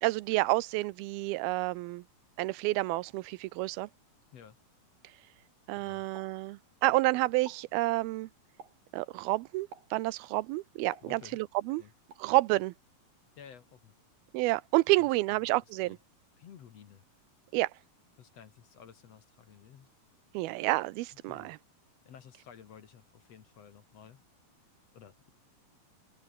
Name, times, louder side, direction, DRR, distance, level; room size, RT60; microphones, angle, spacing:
voice 1, 0.0-2.0 2.4-3.9 5.7-8.3 8.9-11.8 12.2-12.7 14.3-16.0 17.5-17.7 20.3-21.6, right 20 dB, 90° right, 2.6 m, -29 dB
voice 2, 5.7-6.1 11.0-11.4 11.8-11.9 13.4-13.9 15.0-15.5 15.8-16.0 16.4-17.0 18.2-19.9 21.1-21.5 22.1-24.2 24.9-25.3, left 8 dB, 55° left, 2.2 m, -53 dB
Explosion, 6.2-7.0 7.3-7.8 8.6-9.0 9.7-10.1 10.9-11.6 12.1-12.4, right 5 dB, 65° right, 6.1 m, -52 dB
open air
omnidirectional pair, 4.3 m